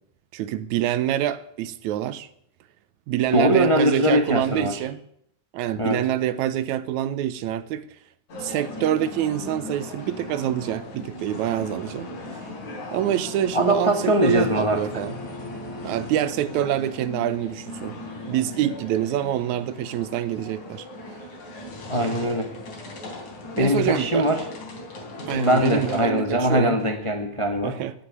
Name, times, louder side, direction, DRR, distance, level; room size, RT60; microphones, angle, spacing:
voice 1, 0.3-2.3 3.1-5.0 5.5-7.8 8.4-12.1 12.9-15.2 15.8-18.0 18.3-20.9 23.6-24.3 25.3-26.8 27.6-27.9, right 11 dB, 80° right, 2.1 m, -26 dB
voice 2, 3.3-4.8 5.8-6.0 13.5-14.8 21.9-22.5 23.6-24.4 25.3-27.9, equal, 30° left, 0.5 m, -22 dB
sound 1, 8.3-26.0, left 1 dB, 85° left, 4.9 m, -38 dB
17.5 x 6.4 x 9.4 m
omnidirectional pair, 3.4 m